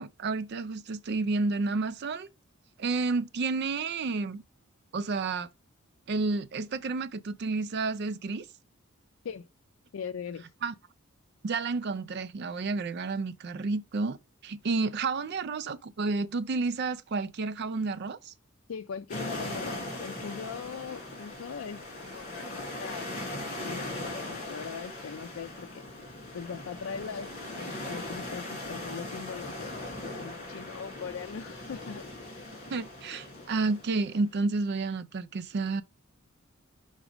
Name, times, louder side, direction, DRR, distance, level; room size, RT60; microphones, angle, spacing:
voice 1, 0.0-2.3 2.8-4.4 4.9-5.5 6.1-8.5 10.6-10.7 11.4-14.2 14.4-18.3 32.7-35.8, right 3 dB, 55° right, 0.4 m, -30 dB
voice 2, 9.9-10.5 18.7-23.1 23.6-29.8 30.1-32.4, left 6 dB, 80° left, 0.4 m, -40 dB
sound 1, 19.1-34.2, left 1 dB, 35° left, 2.7 m, -39 dB
6.1 x 4.0 x 4.9 m
head